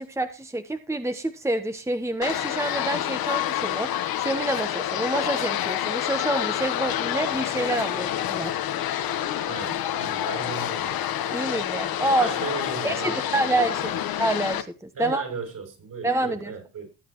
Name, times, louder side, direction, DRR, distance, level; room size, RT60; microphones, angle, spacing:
voice 1, 0.0-8.6 11.3-12.3 12.8-13.8 14.2-15.2 16.0-16.5, right 1 dB, 5° right, 8 dB, 1.1 m, -27 dB
sound 1, 2.2-14.6, left 11 dB, 65° left, 1.3 m, -28 dB
voice 2, 9.5-11.0 12.2-14.0 14.9-16.9, right 5 dB, 55° right, 3 dB, 7.4 m, -36 dB
20.0 x 8.0 x 3.1 m, 0.30 s
supercardioid pair, 75°, 38 cm